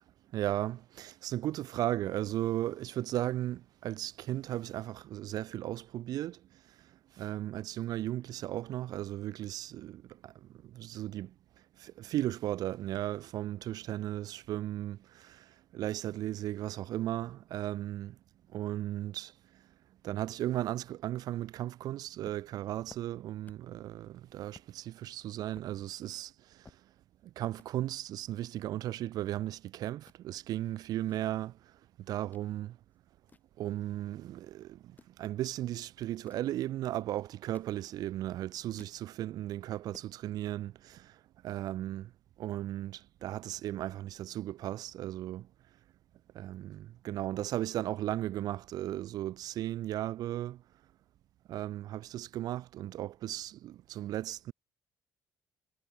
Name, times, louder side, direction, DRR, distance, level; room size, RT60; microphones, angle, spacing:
voice 1, 0.3-6.4 7.2-11.3 11.8-18.2 18.5-19.3 20.0-26.6 27.2-31.6 32.0-32.8 33.6-41.2 41.4-42.1 42.4-45.5 46.3-50.6 51.5-54.5, right 13 dB, 70° right, 0.5 m, -36 dB
sound 1, 22.2-23.8 24.1-24.2 24.5-24.7 25.2-27.2 27.5-27.7 28.4-29.6 29.9-30.2 30.8-32.5 32.9-34.2 34.8-35.2 36.0-36.5 37.2-38.2 38.5-39.0 39.4-39.5 39.7-40.1, left 4 dB, 25° left, 7.8 m, -59 dB
cardioid pair, 100°, 7 cm